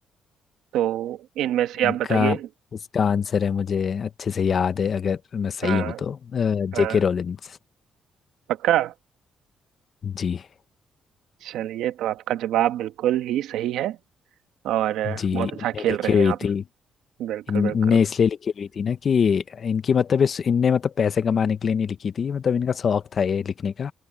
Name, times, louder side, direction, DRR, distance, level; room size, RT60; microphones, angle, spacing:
voice 1, 0.7-2.5 5.6-6.0 6.7-7.0 8.6-8.9 11.4-14.0 14.6-16.4 17.2-17.7, right 12 dB, 85° right, 1.3 m, -25 dB
voice 2, 1.8-2.4 2.9-7.6 10.0-10.5 15.0-16.6 17.5-23.9, left 6 dB, 50° left, 1.0 m, -23 dB
cardioid pair, 90°, 0 cm